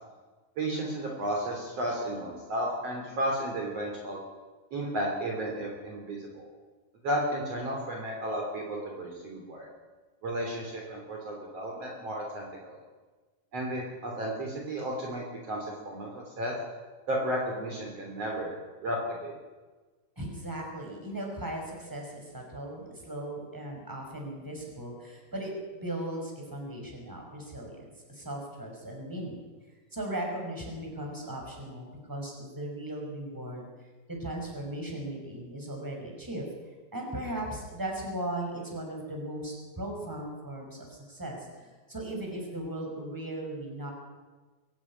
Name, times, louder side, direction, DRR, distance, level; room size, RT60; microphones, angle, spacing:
voice 1, 0.6-4.2 4.7-6.5 7.0-9.7 10.2-12.8 13.5-16.5 17.1-19.4, right 1 dB, 45° right, -1 dB, 4.0 m, -33 dB
voice 2, 20.2-29.4 29.9-33.6 34.1-36.5 36.9-43.9, right 1 dB, 5° right, 0 dB, 5.2 m, -37 dB
23.5 x 12.0 x 9.7 m, 1.3 s
omnidirectional pair, 4.2 m